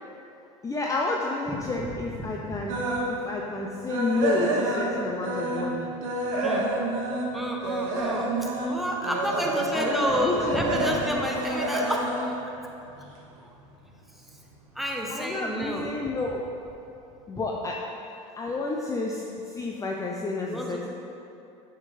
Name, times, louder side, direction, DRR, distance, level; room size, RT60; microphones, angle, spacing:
voice 1, 0.6-2.8 3.1-5.9 8.5-8.7 9.7-10.9 15.1-16.4 17.3-17.8 18.4-20.9, left 3 dB, 20° left, -1 dB, 0.5 m, -30 dB
voice 2, 1.5-1.9 2.2-2.6 6.4-6.7 7.3-8.3 8.7-12.4 14.7-15.9 20.5-20.9, equal, ahead, -1 dB, 0.9 m, -30 dB
sound 1, 2.7-3.1 3.5-5.7 6.0-13.2 13.6-13.9 14.3-14.4 14.8-14.9, right 2 dB, 80° right, 1.1 m, -28 dB
7.5 x 5.6 x 3.2 m, 2.8 s
supercardioid pair, 100°, 16 cm